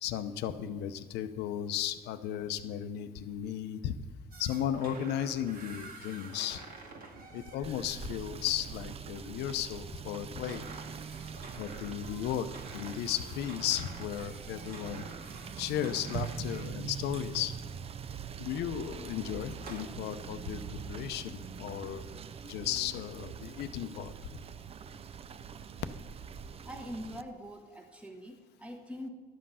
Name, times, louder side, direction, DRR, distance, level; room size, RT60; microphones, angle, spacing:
voice 1, 0.0-4.0 4.4-6.6 7.3-10.6 11.6-12.5 12.7-15.1 15.6-17.5 18.4-22.0 22.4-24.1, left 10 dB, 80° left, 11 dB, 0.7 m, -35 dB
sound 1, 4.3-8.0 10.2-16.8 19.2-19.9, right 3 dB, 60° right, 1.9 m, -49 dB
Rain / Motor vehicle (road), 7.6-27.2, right 6 dB, 35° right, 0.5 m, -43 dB
voice 2, 26.6-29.1, equal, 5° right, 3 dB, 1.2 m, -43 dB
11.5 x 7.7 x 5.6 m, 1.4 s
cardioid pair, 110°, 17 cm